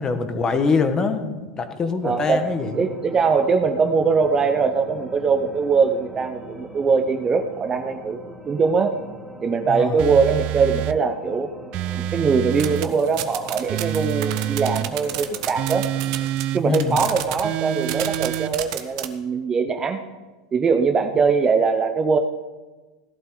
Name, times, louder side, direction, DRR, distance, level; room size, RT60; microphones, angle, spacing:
voice 1, 0.0-2.8 9.7-9.9 16.6-17.0, left 4 dB, 20° left, 7 dB, 1.4 m, -24 dB
sound 1, 2.0-16.3, right 1 dB, ahead, 1.6 m, -41 dB
voice 2, 2.0-2.5 2.7-8.2 8.5-8.9 9.4-11.5 12.1-15.9 16.5-20.0 20.5-22.2, right 5 dB, 20° right, 7 dB, 0.8 m, -21 dB
sound 2, 10.0-11.0 11.7-12.9 13.7-14.9 15.6-16.6 17.4-18.5, right 14 dB, 40° right, 0.4 m, -27 dB
sound 3, 12.6-16.4 16.7-17.4 17.8-19.1, right 14 dB, 65° right, 1.2 m, -30 dB
17.5 x 12.0 x 3.9 m, 1.2 s
supercardioid pair, 135°, 3 cm